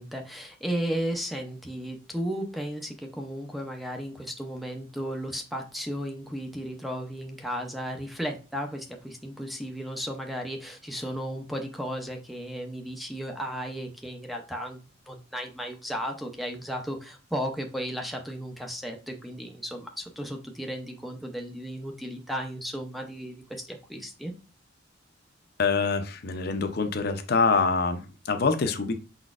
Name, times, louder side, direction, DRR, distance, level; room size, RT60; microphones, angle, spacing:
voice 1, 0.0-24.3, equal, ahead, 2 dB, 0.5 m, -34 dB
voice 2, 25.6-28.9, left 4 dB, 50° left, 8 dB, 0.5 m, -25 dB
5.5 x 4.0 x 2.4 m, 0.34 s
head